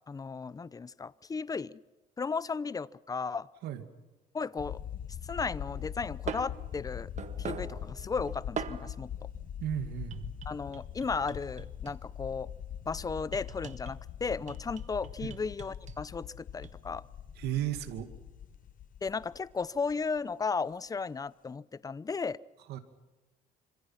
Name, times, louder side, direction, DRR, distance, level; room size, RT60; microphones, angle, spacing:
voice 1, 0.1-1.8 2.2-3.5 4.3-4.8 5.2-7.1 7.4-9.1 10.5-12.5 12.9-17.0 19.0-22.4, left 5 dB, 20° left, 19 dB, 0.7 m, -35 dB
sound 1, 4.6-20.2, left 9 dB, 50° left, 1.2 m, -42 dB
sound 2, 5.6-9.0 10.1-12.2 13.3-14.0 14.5-16.0 16.6-16.8, right 7 dB, 45° right, 1.6 m, -42 dB
voice 2, 9.6-10.3 15.2-15.3 17.4-18.1 22.7-22.8, right 12 dB, 75° right, 8 dB, 2.4 m, -34 dB
26.5 x 26.5 x 5.9 m, 1.1 s
cardioid pair, 110°, 17 cm